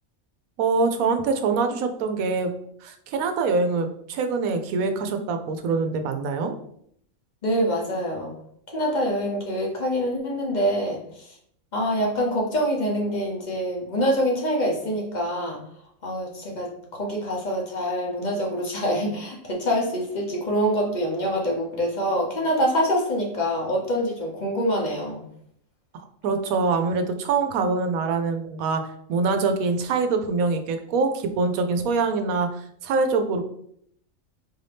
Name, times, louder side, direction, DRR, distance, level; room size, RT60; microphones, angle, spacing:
voice 1, 0.6-2.5 2.8-6.5 26.2-28.8 29.1-33.4, right 4 dB, 85° right, 6 dB, 1.0 m, -24 dB
voice 2, 7.4-8.3 8.7-11.3 11.7-15.6 16.0-25.3, equal, 40° left, -1 dB, 0.8 m, -25 dB
4.4 x 2.7 x 3.3 m, 0.69 s
omnidirectional pair, 1.5 m